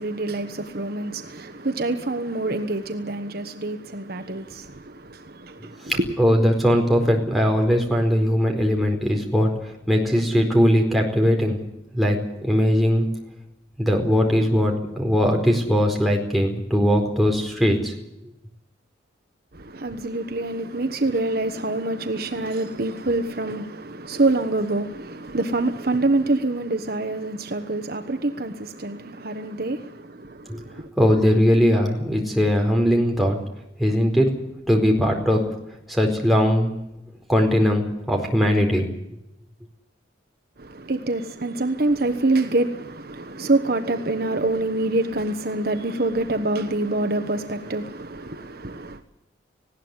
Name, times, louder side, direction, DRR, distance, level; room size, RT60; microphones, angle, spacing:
voice 1, 0.0-6.1 19.5-30.9 40.6-49.0, right 2 dB, 50° right, 1.3 m, -26 dB
voice 2, 5.9-9.5 9.9-11.6 11.9-13.1 13.8-17.9 30.5-30.6 31.0-33.4 33.8-34.3 34.7-35.4 35.9-36.8 37.3-38.9, equal, ahead, 4.6 m, -20 dB
19.5 x 17.0 x 9.8 m
head